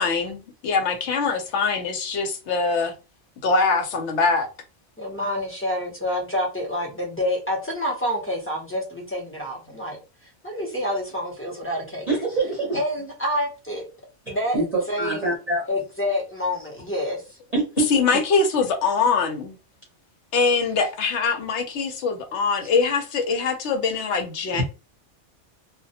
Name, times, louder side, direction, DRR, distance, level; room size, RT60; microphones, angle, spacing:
voice 1, 0.0-2.9 3.4-4.5 17.9-19.6 20.3-24.6, left 4 dB, 75° left, 0.9 m, -23 dB
voice 2, 5.0-10.0 10.2-12.1 12.7-13.8 14.3-14.6 14.9-15.3 15.7-17.4, left 1 dB, 15° left, 0.5 m, -28 dB
voice 3, 12.1-12.8 14.3-15.6 17.5-17.9 18.1-18.2 24.5-24.6, right 2 dB, 40° right, 0.7 m, -25 dB
2.2 x 2.1 x 2.7 m
omnidirectional pair, 1.2 m